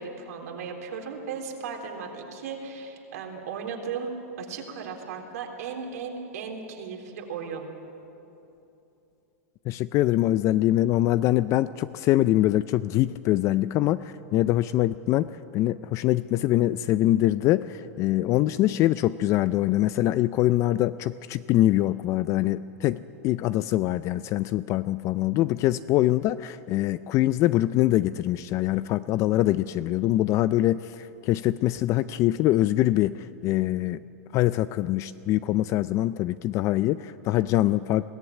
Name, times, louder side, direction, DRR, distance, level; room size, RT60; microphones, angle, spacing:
voice 1, 0.0-7.7, right 5 dB, 75° right, 1 dB, 3.7 m, -36 dB
voice 2, 9.7-34.0 34.3-38.0, left 15 dB, 35° left, 15 dB, 0.4 m, -24 dB
21.5 x 14.5 x 9.7 m, 2.9 s
hypercardioid pair, 130°, 9 cm